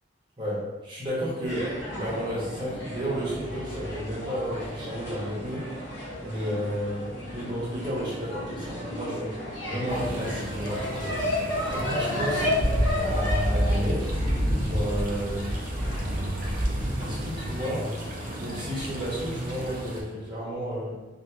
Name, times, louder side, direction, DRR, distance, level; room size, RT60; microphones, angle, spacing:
voice 1, 0.4-5.7 6.2-9.4 9.6-11.2 11.7-12.5 13.0-14.2 14.6-15.6 17.0-17.9 18.4-21.0, equal, 25° right, -7 dB, 0.8 m, -32 dB
sound 1, 1.5-19.7, equal, 65° left, 1.0 m, -31 dB
sound 2, 9.9-20.0, right 1 dB, 45° right, 0.4 m, -35 dB
2.7 x 2.5 x 2.2 m, 1.1 s
head